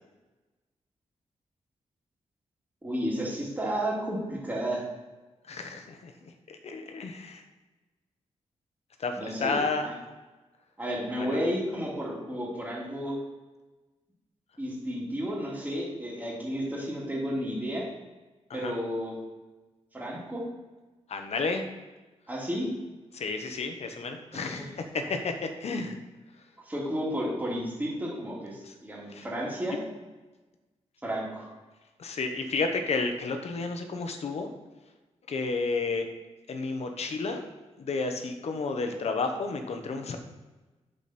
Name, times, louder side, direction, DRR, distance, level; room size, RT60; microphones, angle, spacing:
voice 1, 2.8-4.8 9.1-9.9 10.8-13.2 14.6-17.9 18.5-19.2 19.9-20.5 22.3-22.7 24.3-24.7 26.7-29.8 31.0-31.5, equal, 15° right, -5 dB, 3.1 m, -32 dB
voice 2, 5.5-6.1 6.5-7.4 9.0-9.9 11.3-11.4 18.5-18.7 21.1-21.6 23.1-26.0 28.7-28.8 29.1-29.3 32.0-34.5 35.3-36.1 36.5-37.4 37.8-40.2, left 3 dB, 65° left, 5 dB, 1.3 m, -31 dB
8.6 x 7.0 x 4.5 m, 1.2 s
cardioid pair, 90°, 12 cm